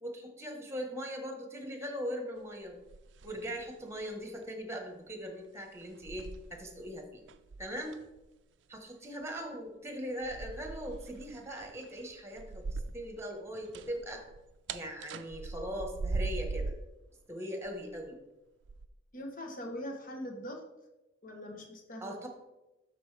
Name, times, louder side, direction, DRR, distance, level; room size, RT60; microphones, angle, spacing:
voice 1, 0.0-2.8 3.2-7.2 7.6-8.0 8.7-14.2 14.7-16.7 17.3-18.2 22.0-22.3, equal, 15° right, 3 dB, 1.2 m, -40 dB
sound 1, 2.6-3.7 4.0-4.3 5.1-5.2 5.8-6.9 7.3-8.2 10.2-13.2 13.5-16.9 17.6-18.1 18.6-18.9, right 3 dB, 70° right, 0.4 m, -40 dB
voice 2, 19.1-20.6 21.2-22.2, left 1 dB, 45° left, 3 dB, 1.1 m, -42 dB
12.5 x 4.3 x 3.3 m, 1.0 s
head